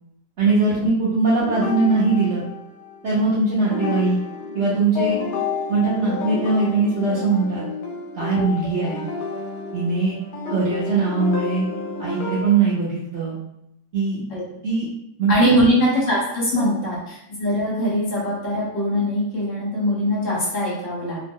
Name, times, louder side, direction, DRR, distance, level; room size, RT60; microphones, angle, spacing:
voice 1, 0.4-2.4 3.0-4.2 4.5-5.2 5.7-7.6 8.1-9.1 9.7-10.2 10.5-11.7 12.0-13.4 13.9-14.3 14.6-14.9 15.2-15.3 16.6-16.8, right 4 dB, 60° right, -7 dB, 0.7 m, -21 dB
sound 1, 1.4-3.2 3.6-12.5, left 4 dB, 85° left, 1.2 m, -30 dB
voice 2, 15.3-21.2, equal, 55° left, -6 dB, 1.3 m, -22 dB
2.9 x 2.1 x 3.5 m, 0.77 s
omnidirectional pair, 1.8 m